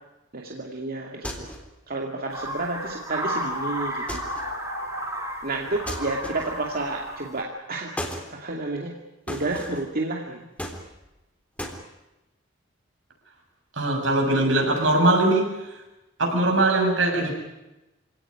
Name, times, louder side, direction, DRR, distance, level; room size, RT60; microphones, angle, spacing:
voice 1, 0.3-1.5 1.9-4.2 5.4-7.9 8.3-8.9 9.3-10.5, right 2 dB, 50° right, 0 dB, 2.5 m, -30 dB
sound 1, 1.2-1.8 4.1-4.6 5.9-6.7 8.0-8.3 9.3-9.9 10.6-11.2 11.6-11.8, equal, 5° left, 3.6 m, -35 dB
sound 2, 2.3-7.4, equal, 15° right, 4.5 m, -33 dB
voice 2, 13.8-15.5 16.2-17.3, right 2 dB, 75° right, 2 dB, 7.4 m, -21 dB
26.0 x 18.0 x 9.9 m, 0.99 s
head